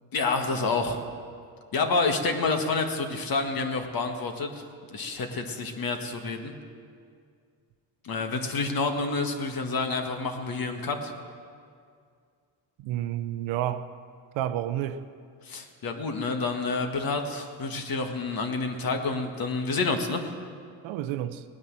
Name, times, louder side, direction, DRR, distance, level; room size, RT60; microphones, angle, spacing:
voice 1, 0.1-1.0 1.7-4.6 4.9-6.5 8.0-11.1 15.4-20.2, left 3 dB, 45° left, 1.8 m, -28 dB
voice 2, 12.8-13.9 14.3-15.1 20.8-21.4, right 12 dB, 75° right, 0.8 m, -30 dB
19.0 x 9.5 x 7.5 m
cardioid pair, 100°, 47 cm